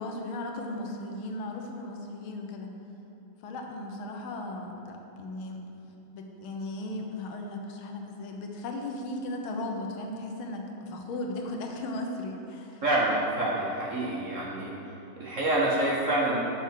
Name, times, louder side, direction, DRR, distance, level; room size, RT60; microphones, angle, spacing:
voice 1, 0.0-2.7 3.4-5.7 6.1-12.8, left 2 dB, 75° left, 2 dB, 1.7 m, -36 dB
voice 2, 12.8-14.7 15.2-16.4, right 1 dB, 50° right, -5 dB, 1.1 m, -27 dB
6.8 x 5.8 x 6.4 m, 2.8 s
omnidirectional pair, 2.3 m